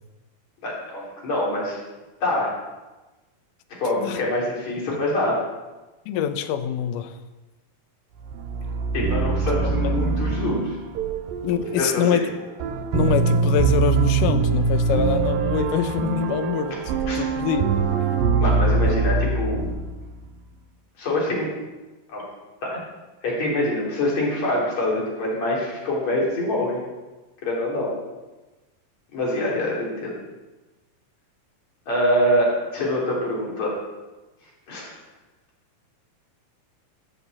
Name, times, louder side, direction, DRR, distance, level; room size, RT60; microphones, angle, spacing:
voice 1, 0.6-1.8 2.2-2.5 3.8-5.4 8.9-10.8 11.8-12.2 17.1-17.2 18.4-19.6 21.0-21.5 22.1-22.2 22.6-22.8 23.2-26.8 27.4-27.9 29.1-30.1 31.9-33.8 34.7-34.9, left 1 dB, 50° left, -4 dB, 4.6 m, -25 dB
voice 2, 6.1-7.2 9.8-9.9 11.4-12.2 12.9-16.8 17.1-17.8, left 9 dB, 75° left, 9 dB, 2.2 m, -25 dB
sound 1, 8.2-20.3, right 4 dB, 80° right, 2.7 m, -23 dB
14.5 x 7.1 x 7.4 m, 1.1 s
omnidirectional pair, 4.0 m